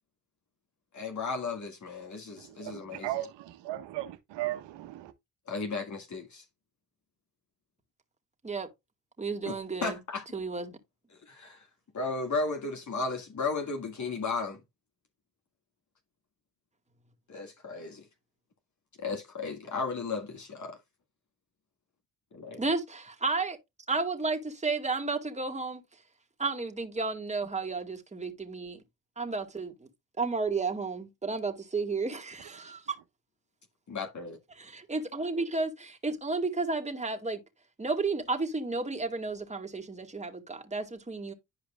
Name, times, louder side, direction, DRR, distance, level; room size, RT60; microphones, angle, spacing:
voice 1, 0.9-3.1 5.5-6.4 9.4-9.5 9.8-10.3 11.3-11.7 11.9-14.6 17.3-18.0 19.0-20.8 22.3-22.6 33.9-34.4, left 4 dB, 40° left, 1.9 m, -34 dB
voice 2, 2.4-5.1 32.6-32.7, right 15 dB, 75° right, 1.2 m, -37 dB
voice 3, 9.2-10.0 10.3-10.8 22.6-23.6 23.9-25.8 26.4-28.8 29.2-29.9 30.2-33.0 34.5-37.4 37.8-41.3, right 3 dB, 15° right, 2.1 m, -32 dB
11.0 x 5.0 x 2.4 m
supercardioid pair, 75°, 42 cm